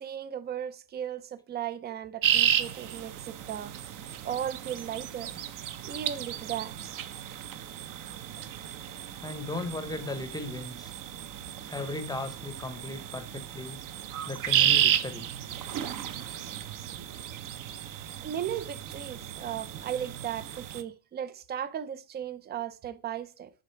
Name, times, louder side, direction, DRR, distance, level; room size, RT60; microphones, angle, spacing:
voice 1, 0.0-3.7 4.2-5.3 5.8-6.7 18.2-23.5, right 9 dB, 25° right, 0.4 m, -36 dB
sound 1, 2.2-20.8, right 10 dB, 45° right, 0.7 m, -32 dB
voice 2, 9.2-10.9 11.7-13.8 14.3-15.3, left 2 dB, 10° left, 0.7 m, -36 dB
8.0 x 3.7 x 5.6 m
cardioid pair, 135°, 46 cm